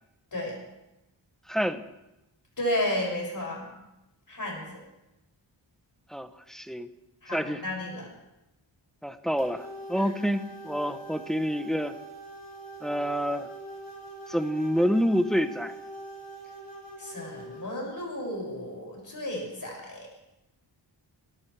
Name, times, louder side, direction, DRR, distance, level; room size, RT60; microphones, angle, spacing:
voice 1, 1.5-1.8 6.1-6.9 7.3-7.6 9.0-12.0 12.8-13.5 14.3-15.7, equal, ahead, 9 dB, 0.9 m, -28 dB
voice 2, 2.6-3.7 4.3-4.8 7.2-8.1 9.9-10.1 17.0-20.1, left 1 dB, 45° left, -2 dB, 6.8 m, -33 dB
sound 1, 9.4-17.8, right 2 dB, 20° left, 5.4 m, -43 dB
26.0 x 13.0 x 3.4 m, 0.93 s
wide cardioid pair, 95°, 45 cm